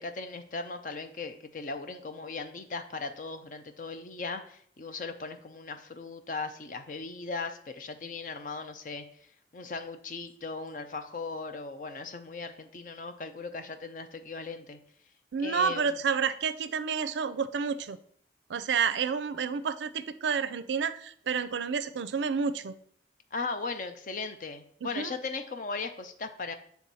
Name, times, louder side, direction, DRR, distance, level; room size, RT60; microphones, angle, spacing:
voice 1, 0.0-9.1 9.5-14.8 15.4-16.0 23.3-26.5, left 4 dB, 50° left, 9 dB, 0.5 m, -38 dB
voice 2, 15.3-18.0 18.5-22.7 24.8-25.1, right 6 dB, 85° right, 13 dB, 0.4 m, -30 dB
7.6 x 3.4 x 4.1 m, 0.62 s
head